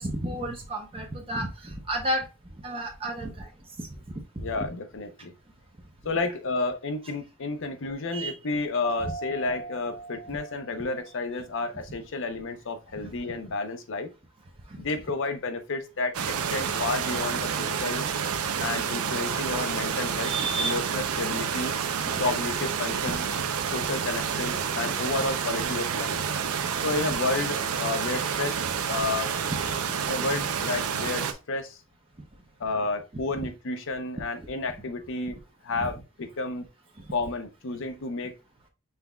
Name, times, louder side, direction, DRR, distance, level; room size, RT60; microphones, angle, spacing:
voice 1, 0.0-2.2 2.6-3.5 3.8-3.9 4.5-4.7 8.1-8.3 9.0-9.1 10.3-10.4 20.2-20.8 23.0-23.1 29.3-29.9 33.4-33.5 35.7-35.9, right 1 dB, 25° right, 0.7 m, -32 dB
voice 2, 4.4-5.3 6.0-14.1 14.8-16.2 16.5-18.1 18.6-20.3 20.6-21.7 22.2-23.3 23.6-26.2 26.8-29.3 30.1-31.8 32.6-35.4 35.6-36.7 37.1-38.3, left 3 dB, 60° left, 0.7 m, -31 dB
Mallet percussion, 8.8-11.4, right 3 dB, 20° left, 0.8 m, -39 dB
sound 1, 16.1-31.3, right 7 dB, 80° right, 0.6 m, -29 dB
5.7 x 3.5 x 2.3 m
head